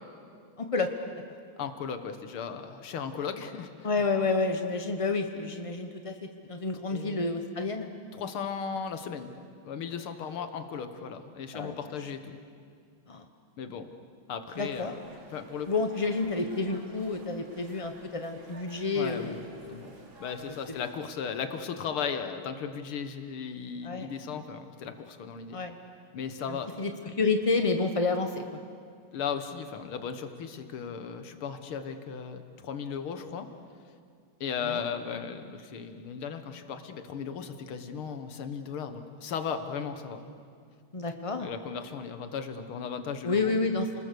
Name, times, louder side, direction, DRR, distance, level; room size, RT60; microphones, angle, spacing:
voice 1, 0.6-0.9 3.8-6.1 6.5-7.9 11.5-11.8 13.1-13.2 14.6-14.9 15.7-19.3 19.6-19.9 20.5-20.6 23.8-24.1 25.5-25.7 26.5-28.4 34.6-34.8 40.9-41.5 43.2-43.9, left 3 dB, 45° left, 6 dB, 0.4 m, -29 dB
voice 2, 1.6-4.0 6.9-7.4 8.1-9.3 9.6-12.4 13.6-13.9 14.3-15.0 15.3-15.7 18.9-19.9 20.2-25.6 26.1-26.7 29.1-33.5 34.4-40.2 41.4-43.5, left 6 dB, 80° left, 8 dB, 2.2 m, -36 dB
sound 1, 14.5-20.9, right 2 dB, 70° right, 3.6 m, -52 dB
30.0 x 20.5 x 6.8 m, 2.2 s
omnidirectional pair, 2.3 m